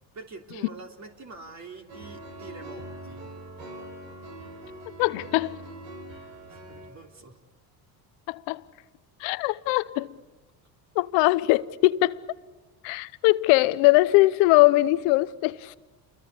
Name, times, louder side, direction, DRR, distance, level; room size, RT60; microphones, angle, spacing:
voice 1, 0.1-3.3 6.5-7.4, right 3 dB, 40° right, 3.4 m, -45 dB
sound 1, 1.9-6.9, right 1 dB, 85° right, 5.2 m, -42 dB
voice 2, 5.0-5.6 8.3-8.6 9.2-10.1 10.9-12.2 12.8-15.8, left 20 dB, 80° left, 0.9 m, -21 dB
28.5 x 22.5 x 8.4 m
supercardioid pair, 85°, 43 cm